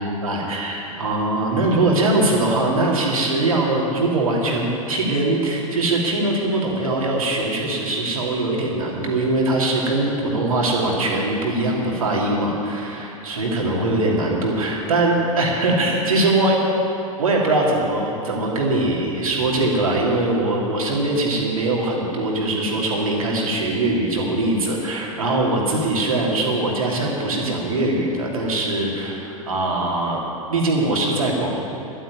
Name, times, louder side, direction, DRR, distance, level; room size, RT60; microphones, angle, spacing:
voice 1, 0.0-16.6 17.2-30.2 30.5-31.6, right 2 dB, 75° right, -2 dB, 2.8 m, -21 dB
12.0 x 9.2 x 9.5 m, 2.9 s
figure-of-eight pair, 90°, 18 cm